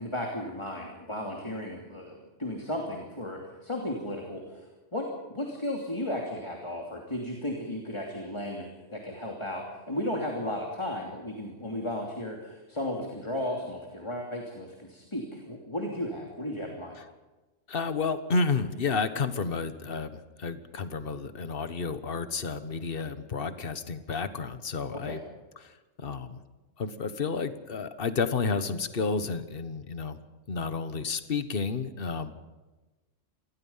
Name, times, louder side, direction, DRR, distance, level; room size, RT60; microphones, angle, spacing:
voice 1, 0.0-4.7 4.9-17.0 24.9-25.2, left 1 dB, 25° left, 0 dB, 2.9 m, -35 dB
voice 2, 17.7-25.2 25.6-26.4 26.8-30.2 30.5-32.3, left 4 dB, 50° left, 11 dB, 1.5 m, -31 dB
27.5 x 19.5 x 5.7 m, 1.2 s
omnidirectional pair, 1.3 m